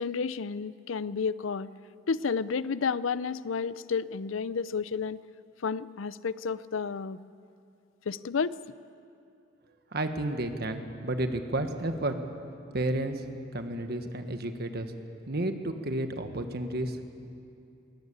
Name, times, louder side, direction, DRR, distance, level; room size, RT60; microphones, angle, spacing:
voice 1, 0.0-1.7 2.1-5.2 5.6-7.2 8.1-8.6, left 5 dB, 90° left, 17 dB, 0.5 m, -31 dB
voice 2, 9.9-12.2 12.7-13.2 13.5-14.9 15.3-17.0, right 1 dB, 55° right, 7 dB, 1.5 m, -31 dB
21.5 x 18.0 x 8.9 m, 2.6 s
head